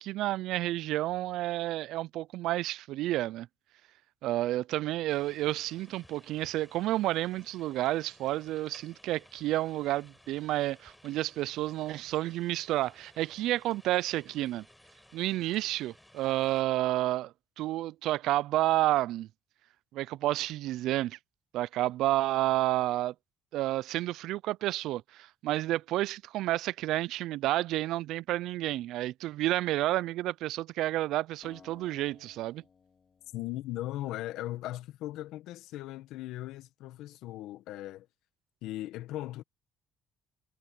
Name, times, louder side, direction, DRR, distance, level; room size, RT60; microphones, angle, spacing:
voice 1, 0.0-3.5 4.2-14.6 15.1-19.3 19.9-21.2 21.5-23.1 23.5-32.6, right 15 dB, 75° right, 0.4 m, -30 dB
sound 1, 5.1-16.6, left 1 dB, 5° left, 7.0 m, -58 dB
Acoustic guitar, 31.4-34.6, left 5 dB, 40° left, 3.9 m, -59 dB
voice 2, 33.3-38.1 38.6-39.4, left 15 dB, 75° left, 1.3 m, -38 dB
supercardioid pair, 80°, 0 cm